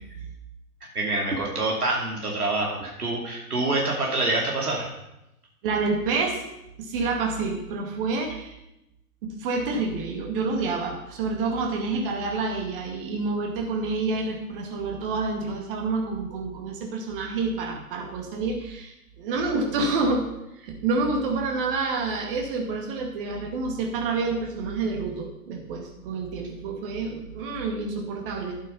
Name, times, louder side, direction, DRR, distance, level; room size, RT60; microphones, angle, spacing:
voice 1, 0.9-4.9, right 2 dB, 75° right, -1 dB, 2.8 m, -26 dB
voice 2, 5.6-6.4 6.8-8.6 9.2-20.3 20.5-28.6, right 3 dB, 35° right, 1 dB, 2.4 m, -28 dB
12.0 x 8.2 x 5.4 m, 0.88 s
figure-of-eight pair, 120°, 45 cm